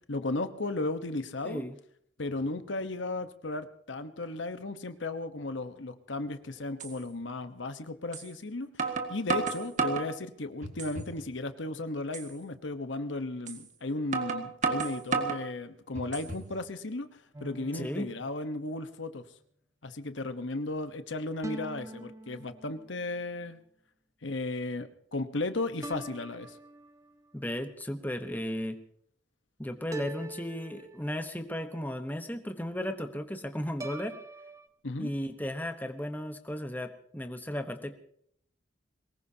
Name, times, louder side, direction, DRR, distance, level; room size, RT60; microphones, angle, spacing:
voice 1, 0.1-1.6 2.2-8.7 9.1-17.1 17.4-19.2 19.8-23.6 24.2-26.6 34.8-35.1, left 2 dB, 80° left, 10 dB, 1.2 m, -35 dB
voice 2, 1.4-1.8 17.7-18.1 27.3-28.8 29.6-34.2 35.0-38.0, equal, 10° left, 7 dB, 1.1 m, -35 dB
sound 1, 6.2-6.3 6.8-6.9 8.1-8.3 8.8-10.1 10.6-11.2 11.6-11.7 12.1-12.3 13.5-13.6 14.1-15.4 16.0-16.5, right 4 dB, 40° right, 1.8 m, -31 dB
sound 2, 17.3-19.0 21.4-23.1 25.8-27.3 29.9-31.5 33.8-34.7, right 2 dB, 15° right, 0.7 m, -44 dB
22.5 x 20.0 x 2.9 m, 0.65 s
head